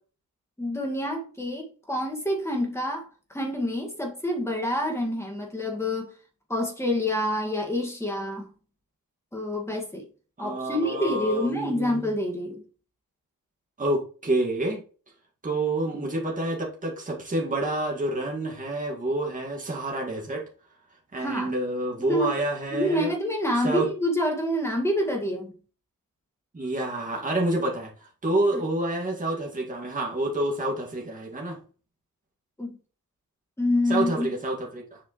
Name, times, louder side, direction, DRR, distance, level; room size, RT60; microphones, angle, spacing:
voice 1, 0.6-6.1 6.5-8.5 9.3-10.1 10.4-12.6 21.2-21.5 22.0-22.4 22.7-25.5 28.5-28.6 32.6-32.8 33.6-34.3, left 1 dB, 10° left, 2.0 m, -27 dB
voice 2, 10.4-12.1 13.8-14.8 15.4-20.4 21.1-23.1 23.6-23.9 26.5-27.9 28.2-31.6 33.9-35.0, right 2 dB, 25° right, 2.1 m, -28 dB
7.6 x 5.0 x 3.2 m
wide cardioid pair, 140°, 34 cm